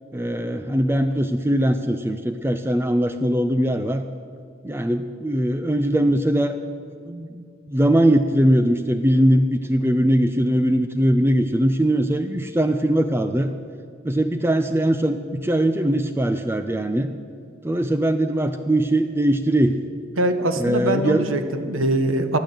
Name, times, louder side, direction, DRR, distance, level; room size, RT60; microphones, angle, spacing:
voice 1, 0.1-4.0 4.6-6.6 7.1-13.5 14.0-17.1 17.6-19.8 20.5-21.3, right 1 dB, 10° right, 9 dB, 0.4 m, -21 dB
voice 2, 20.2-22.4, right 1 dB, 90° right, 8 dB, 1.3 m, -22 dB
15.5 x 10.5 x 7.9 m, 2.4 s
head